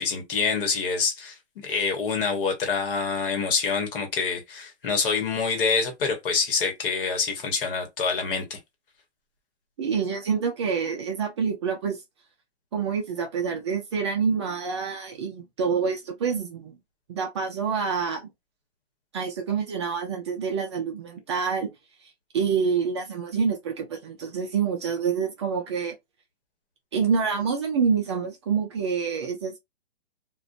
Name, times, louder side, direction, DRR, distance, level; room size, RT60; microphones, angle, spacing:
voice 1, 0.0-1.4 1.6-8.6, left 5 dB, 55° left, 1.1 m, -26 dB
voice 2, 9.8-12.0 12.7-16.8 17.1-18.2 19.1-21.7 22.0-25.9 26.9-29.6, right 6 dB, 30° right, 0.4 m, -27 dB
2.4 x 2.2 x 2.5 m
hypercardioid pair, 145°, 32 cm